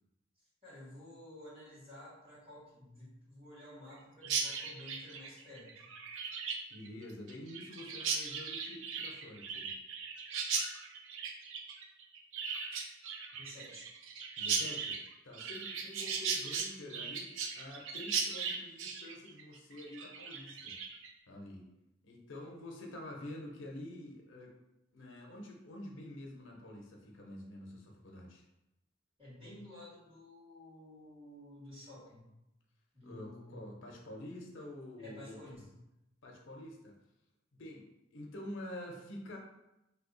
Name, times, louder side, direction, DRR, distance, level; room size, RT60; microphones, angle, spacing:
voice 1, 0.6-5.9 13.4-13.9 29.2-32.3 32.9-33.6 35.0-35.7, left 1 dB, 25° right, -9 dB, 1.5 m, -52 dB
Chirp tweet, 4.2-21.1, right 5 dB, 85° right, 0.4 m, -38 dB
voice 2, 6.7-9.7 14.4-20.8 21.3-21.7 22.0-24.5 24.9-28.4 33.0-35.4 36.2-37.0 37.5-39.4, left 1 dB, 80° left, 0 dB, 0.6 m, -47 dB
2.8 x 2.2 x 3.8 m, 0.91 s
head